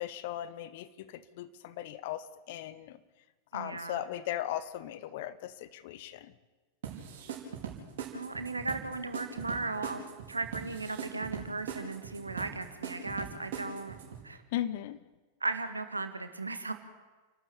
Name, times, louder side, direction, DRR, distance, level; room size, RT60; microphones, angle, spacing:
voice 1, 0.0-3.0 3.5-6.3 14.5-15.0, left 12 dB, 50° left, 14 dB, 1.2 m, -38 dB
voice 2, 3.5-4.0 8.1-10.0 10.3-14.0 14.2-14.4 15.4-16.7, right 3 dB, 80° right, 9 dB, 1.8 m, -36 dB
sound 1, 6.8-14.2, right 7 dB, 55° right, 4.8 m, -41 dB
29.5 x 12.0 x 8.5 m, 1.3 s
figure-of-eight pair, 90°, 0 cm